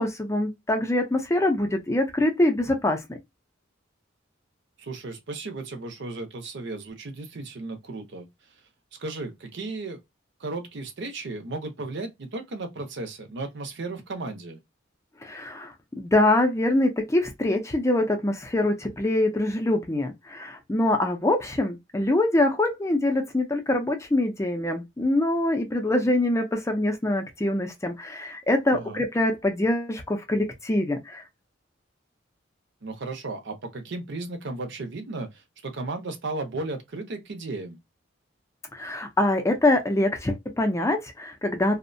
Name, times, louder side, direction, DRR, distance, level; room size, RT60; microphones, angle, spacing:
voice 1, 0.0-3.2 15.2-31.2 38.7-41.8, left 1 dB, 15° left, 0.4 m, -24 dB
voice 2, 4.8-8.3 9.0-10.0 10.4-14.6 28.7-29.0 32.8-37.8, right 2 dB, 60° right, 0.6 m, -35 dB
2.6 x 2.1 x 2.5 m
head